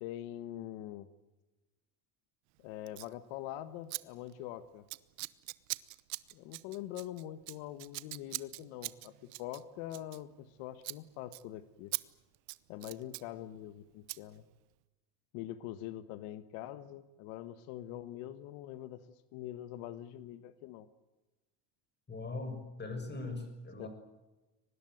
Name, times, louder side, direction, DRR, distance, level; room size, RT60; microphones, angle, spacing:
voice 1, 0.0-1.1 2.6-4.8 6.3-11.9 12.7-14.4 15.3-19.0 19.3-20.9 23.8-23.9, left 13 dB, 85° left, 13 dB, 1.5 m, -44 dB
Scissors, 2.9-3.1 3.9-4.0 4.3-4.5 4.9-10.5 10.8-11.0 11.3-11.4 11.9-12.0 12.3-13.3 14.1-14.2, right 26 dB, 85° right, 1.1 m, -42 dB
voice 2, 22.1-23.9, left 3 dB, 20° left, 7 dB, 6.6 m, -40 dB
24.0 x 20.0 x 9.3 m, 1.1 s
cardioid pair, 135°, 46 cm